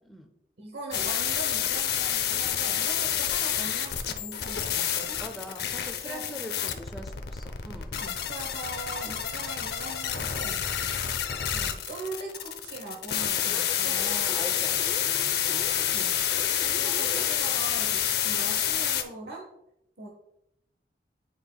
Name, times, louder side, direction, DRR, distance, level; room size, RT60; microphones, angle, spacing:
voice 1, 0.6-5.2 6.0-6.5 7.9-10.7 11.5-14.0 15.9-16.2 16.7-19.5 20.0-20.1, right 3 dB, 75° right, 0 dB, 1.0 m, -41 dB
sound 1, 0.9-19.0, left 9 dB, 70° left, 0.6 m, -28 dB
voice 2, 5.2-8.1 13.8-16.0, equal, ahead, 2 dB, 0.4 m, -43 dB
sound 2, 13.4-17.4 17.8-17.9, left 2 dB, 25° left, 0.9 m, -40 dB
9.0 x 5.4 x 2.2 m, 0.80 s
head